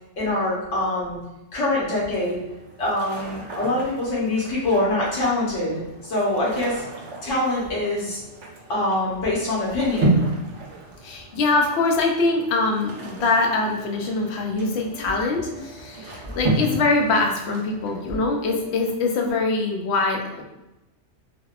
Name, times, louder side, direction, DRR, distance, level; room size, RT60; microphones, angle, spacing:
voice 1, 0.2-1.2 1.5-2.4 2.8-6.8 7.2-8.2 8.7-10.2 15.0-15.1 16.3-16.4 19.2-19.3, left 1 dB, 85° left, -6 dB, 1.2 m, -24 dB
sound 1, 2.1-18.9, right 2 dB, 75° right, 1.0 m, -32 dB
voice 2, 11.0-20.4, left 3 dB, 70° left, 2 dB, 0.8 m, -23 dB
3.5 x 2.2 x 2.3 m, 0.99 s
omnidirectional pair, 1.2 m